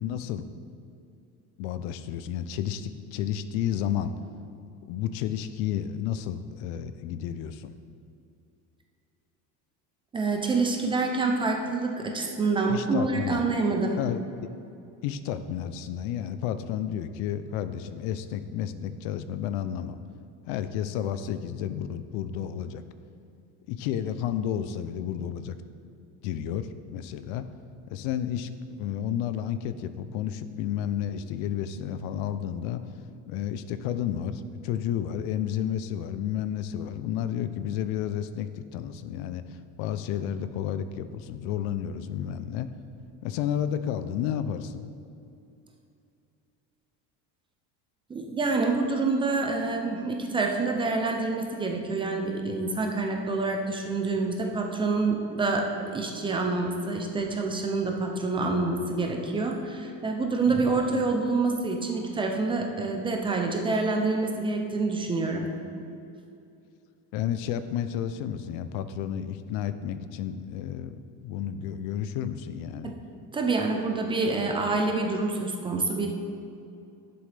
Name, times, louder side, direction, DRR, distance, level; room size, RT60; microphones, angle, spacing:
voice 1, 0.0-0.5 1.6-4.1 4.8-7.7 12.7-13.4 14.0-14.2 15.0-20.0 20.5-22.8 23.7-25.6 26.2-27.4 27.9-32.8 33.3-42.7 43.2-44.9 67.1-72.9, left 10 dB, 75° left, 12 dB, 0.6 m, -31 dB
voice 2, 10.1-14.0 48.1-65.5 72.8-72.9 73.3-76.1, right 3 dB, 15° right, 2 dB, 0.4 m, -27 dB
11.0 x 6.9 x 3.3 m, 2.6 s
cardioid pair, 175°, 36 cm